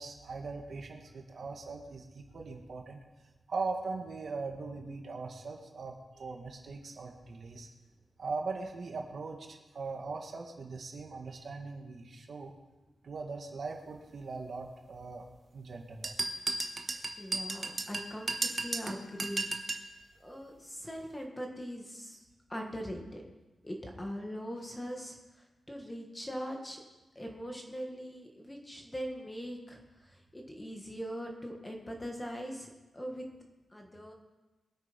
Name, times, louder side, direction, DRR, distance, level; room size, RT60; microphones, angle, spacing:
voice 1, 0.0-3.0 3.5-7.7 8.2-12.5 13.0-15.3 15.5-16.1, right 4 dB, 50° right, 2 dB, 1.8 m, -40 dB
sound 1, 16.0-19.9, right 3 dB, 30° right, 1.2 m, -34 dB
voice 2, 16.9-19.5 20.2-23.2 23.6-25.2 25.7-26.8 27.2-33.3 33.7-34.1, equal, 10° left, 1 dB, 2.1 m, -41 dB
22.5 x 8.6 x 5.3 m, 1.1 s
wide cardioid pair, 155°, 0 cm